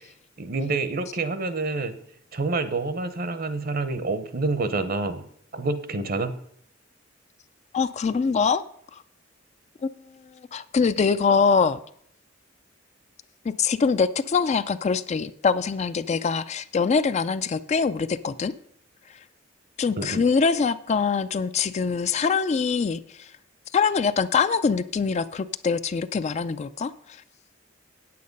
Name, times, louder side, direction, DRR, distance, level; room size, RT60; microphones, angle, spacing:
voice 1, 0.4-2.0 2.3-5.2 5.5-6.3 20.0-20.2, right 3 dB, 50° right, 0.8 m, -27 dB
voice 2, 7.7-8.6 8.9-9.0 9.8-9.9 10.5-11.8 13.5-18.5 19.8-23.3 23.7-26.9, left 5 dB, 35° left, 0.3 m, -23 dB
8.6 x 8.5 x 5.3 m
head